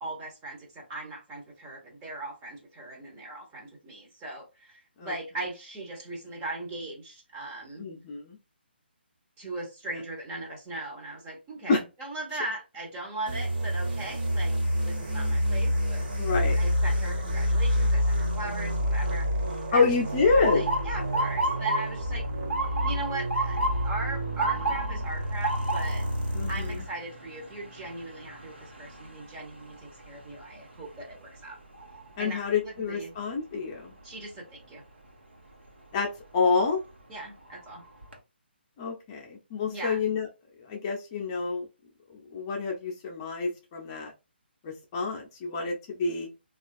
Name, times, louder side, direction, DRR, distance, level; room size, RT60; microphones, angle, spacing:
voice 1, 0.0-7.8 9.4-14.5 14.9-19.9 20.2-22.2 22.8-26.1 26.5-31.6 32.2-33.1 34.0-34.8 37.1-37.8 39.7-40.0, right 2 dB, 20° right, -1 dB, 0.8 m, -39 dB
voice 2, 7.8-8.4 11.7-11.8 16.2-16.6 19.7-20.7 26.3-26.8 32.2-33.9 35.9-36.1 36.3-36.8 38.8-40.3 40.7-41.7 42.1-44.1 44.6-46.3, left 4 dB, 25° left, 0 dB, 0.7 m, -27 dB
sound 1, 13.3-26.9, equal, 55° right, 1.4 m, -28 dB
Motor vehicle (road) / Siren, 20.4-32.3 32.8-33.2 34.0-34.3 36.2-36.4 36.9-37.0 37.5-38.1, right 1 dB, 80° right, 1.0 m, -33 dB
3.2 x 2.4 x 2.5 m, 0.27 s
figure-of-eight pair, 140°, 6 cm